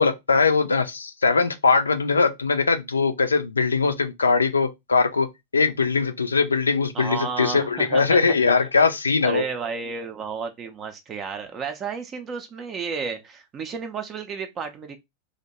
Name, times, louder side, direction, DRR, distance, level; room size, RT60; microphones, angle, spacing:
voice 1, 0.0-5.3 5.5-9.4, left 4 dB, 75° left, 0.3 m, -21 dB
voice 2, 6.9-8.2 9.2-15.0, right 5 dB, 25° right, 0.4 m, -32 dB
2.5 x 2.1 x 2.8 m
figure-of-eight pair, 90°, 0 cm